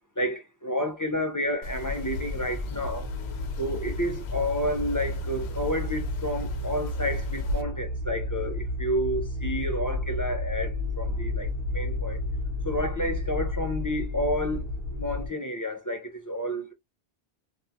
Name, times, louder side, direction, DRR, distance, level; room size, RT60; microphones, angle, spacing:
voice 1, 0.2-3.1 3.6-12.2 12.6-14.7 15.0-16.7, equal, 30° left, 0.3 m, -30 dB
sound 1, 1.6-7.6, left 2 dB, 80° left, 0.8 m, -37 dB
sound 2, 2.1-15.3, left 2 dB, 70° right, 0.8 m, -32 dB
2.6 x 2.2 x 2.6 m
omnidirectional pair, 1.1 m